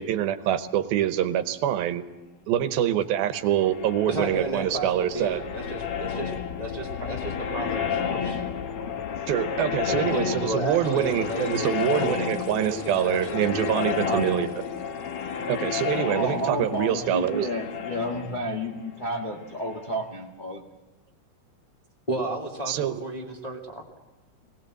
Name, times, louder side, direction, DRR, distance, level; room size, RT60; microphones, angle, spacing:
voice 1, 0.0-2.0 2.5-5.4 9.3-14.5 15.5-17.5 22.7-23.0, right 11 dB, 80° right, 11 dB, 2.8 m, -25 dB
sound 1, 3.4-20.0, left 7 dB, 85° left, 1.2 m, -32 dB
voice 2, 4.1-8.4 9.9-11.5 11.9-14.4 22.1-23.8, right 1 dB, 15° left, -1 dB, 1.6 m, -33 dB
voice 3, 16.0-20.6, equal, 60° left, -1 dB, 0.4 m, -31 dB
20.0 x 18.5 x 7.7 m, 1.1 s
omnidirectional pair, 4.2 m